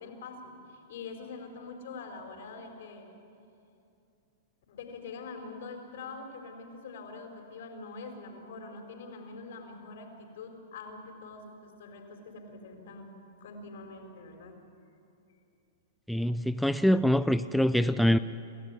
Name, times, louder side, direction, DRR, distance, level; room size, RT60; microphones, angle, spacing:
voice 1, 0.0-3.1 4.7-13.1 13.4-14.6, left 4 dB, 70° left, 4 dB, 4.4 m, -44 dB
voice 2, 16.1-18.2, equal, ahead, 12 dB, 0.4 m, -24 dB
27.5 x 13.5 x 9.9 m, 2.7 s
hypercardioid pair, 125°, 0 cm